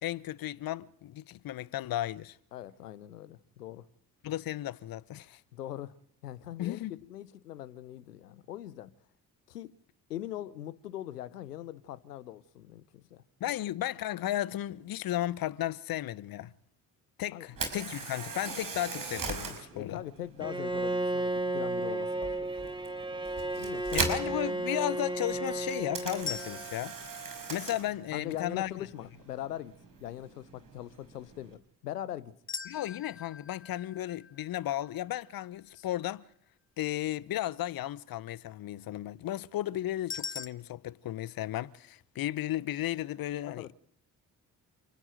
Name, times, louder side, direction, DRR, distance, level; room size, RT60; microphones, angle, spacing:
voice 1, 0.0-2.4 4.2-5.4 6.6-7.0 13.4-16.5 17.2-20.0 23.9-27.0 27.5-28.7 32.7-36.2 36.8-43.7, left 13 dB, 50° left, 0.9 m, -34 dB
voice 2, 2.5-3.8 5.5-6.0 6.2-6.8 7.1-8.9 9.5-9.7 10.1-13.2 17.3-17.5 19.7-22.5 23.1-24.1 28.1-29.7 30.0-32.3 35.7-35.9 43.5-43.7, left 12 dB, 80° left, 1.0 m, -41 dB
Camera, 17.5-31.5, right 5 dB, 45° right, 5.4 m, -41 dB
Bowed string instrument, 20.4-26.7, right 2 dB, 10° right, 1.9 m, -33 dB
sound 1, 26.3-28.4 32.5-35.6 40.1-40.5, left 6 dB, 25° left, 1.3 m, -43 dB
28.5 x 10.0 x 9.1 m
figure-of-eight pair, 45°, 46 cm